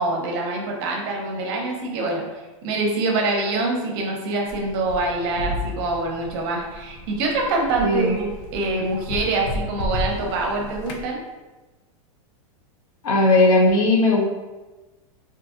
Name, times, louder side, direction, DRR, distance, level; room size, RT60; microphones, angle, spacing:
voice 1, 0.0-11.2, right 2 dB, 45° right, 0 dB, 0.6 m, -25 dB
sound 1, 4.5-11.1, left 2 dB, 45° left, 0.4 m, -33 dB
voice 2, 7.8-8.1 13.0-14.3, left 2 dB, 75° left, 0 dB, 0.7 m, -17 dB
2.8 x 2.6 x 2.4 m, 1.2 s
supercardioid pair, 155°, 18 cm